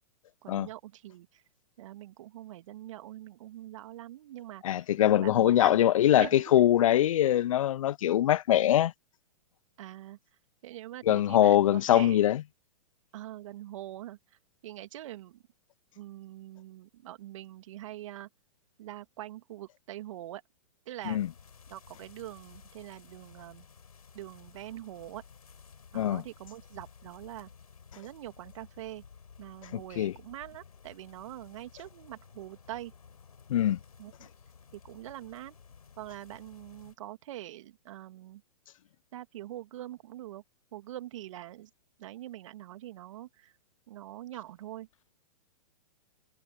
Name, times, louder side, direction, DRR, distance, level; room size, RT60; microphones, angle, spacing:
voice 1, 0.4-1.4 1.8-5.8 6.2-6.7 9.8-10.2 10.6-12.2 13.1-15.4 16.0-18.3 18.8-20.4 20.9-21.3 21.7-23.7 24.1-25.2 25.9-27.5 27.9-29.0 29.4-32.9 34.0-34.3 34.7-35.6 36.0-38.4 39.1-40.4 40.7-41.7 42.0-43.6 43.9-44.9, right 14 dB, 55° right, 2.4 m, -44 dB
voice 2, 4.6-6.3 6.5-8.9 11.1-12.4 21.1-21.3 25.9-26.2 30.0-30.1 33.5-33.8, left 12 dB, 65° left, 0.6 m, -23 dB
sound 1, 21.0-37.0, left 6 dB, 80° left, 4.6 m, -55 dB
hypercardioid pair, 115°, 19 cm